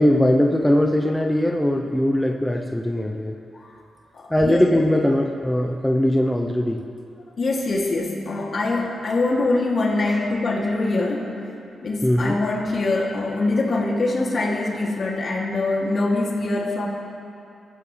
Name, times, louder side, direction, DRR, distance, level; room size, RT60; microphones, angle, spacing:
voice 1, 0.0-3.3 4.3-6.8 12.0-12.4, left 1 dB, 5° left, 1 dB, 0.9 m, -20 dB
voice 2, 4.1-4.8 7.4-11.3 11.8-16.9, left 2 dB, 50° left, -2 dB, 3.0 m, -23 dB
22.5 x 14.5 x 3.5 m, 2.5 s
cardioid pair, 85°, 0 cm